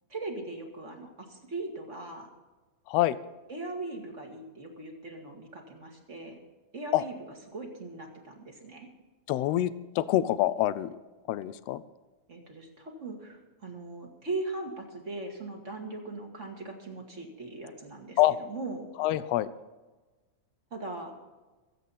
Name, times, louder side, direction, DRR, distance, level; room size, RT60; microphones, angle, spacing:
voice 1, 0.1-2.3 3.5-6.4 6.7-7.2 7.5-8.9 12.3-18.2 18.4-18.9 20.7-21.1, right 2 dB, 30° right, 2 dB, 2.1 m, -39 dB
voice 2, 2.9-3.2 6.9-7.0 9.3-11.0 11.3-11.8 18.2-18.3 19.0-19.5, left 14 dB, 75° left, 15 dB, 1.5 m, -26 dB
23.5 x 8.3 x 4.2 m, 1.2 s
omnidirectional pair, 3.3 m